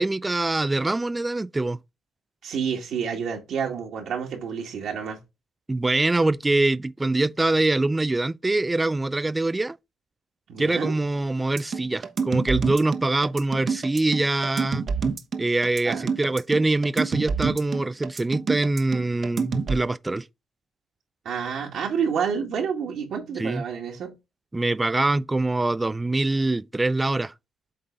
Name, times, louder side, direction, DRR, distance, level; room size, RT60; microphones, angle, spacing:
voice 1, 0.0-1.8 5.7-9.8 10.6-14.9 15.4-20.3 23.4-23.6 24.5-27.3, right 2 dB, 15° right, 0.4 m, -24 dB
voice 2, 2.4-5.2 10.5-10.9 15.8-16.1 21.3-24.1, right 7 dB, 70° right, 1.9 m, -29 dB
sound 1, 11.6-19.8, right 5 dB, 50° right, 1.0 m, -27 dB
7.9 x 3.9 x 3.8 m
cardioid pair, 90°, 0 cm